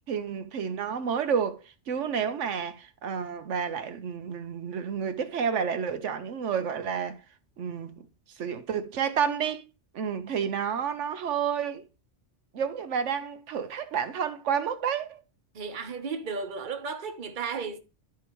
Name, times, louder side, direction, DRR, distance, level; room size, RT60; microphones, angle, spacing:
voice 1, 0.1-7.2 7.6-7.9 8.4-9.6 9.9-11.8 12.5-15.2, right 7 dB, 80° right, 1.1 m, -30 dB
voice 2, 15.5-17.8, right 5 dB, 45° right, 1.0 m, -34 dB
12.5 x 4.7 x 3.0 m
omnidirectional pair, 1.2 m